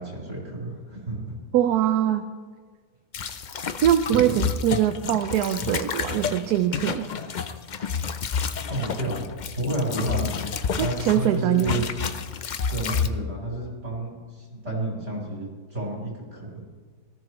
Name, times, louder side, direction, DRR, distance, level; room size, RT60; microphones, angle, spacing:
voice 1, 0.0-1.4 4.1-4.3 8.7-9.2 9.6-10.3 10.8-11.8 12.7-16.6, right 1 dB, 45° right, -3 dB, 4.7 m, -30 dB
voice 2, 1.5-2.2 3.8-7.1 10.8-11.8, right 11 dB, 80° right, 8 dB, 1.2 m, -22 dB
sound 1, 3.1-11.3 11.6-13.1, left 6 dB, 85° left, 0.4 m, -30 dB
19.5 x 14.0 x 3.1 m, 1.5 s
omnidirectional pair, 1.7 m